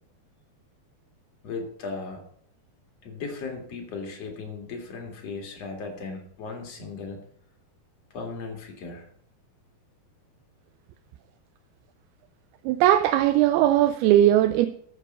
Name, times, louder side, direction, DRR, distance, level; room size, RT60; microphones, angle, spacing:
voice 1, 1.4-2.3 3.0-7.2 8.1-9.1, left 4 dB, 45° left, 2 dB, 2.5 m, -36 dB
voice 2, 12.7-14.7, right 12 dB, 80° right, 10 dB, 2.4 m, -19 dB
13.5 x 7.7 x 5.3 m, 0.65 s
omnidirectional pair, 4.7 m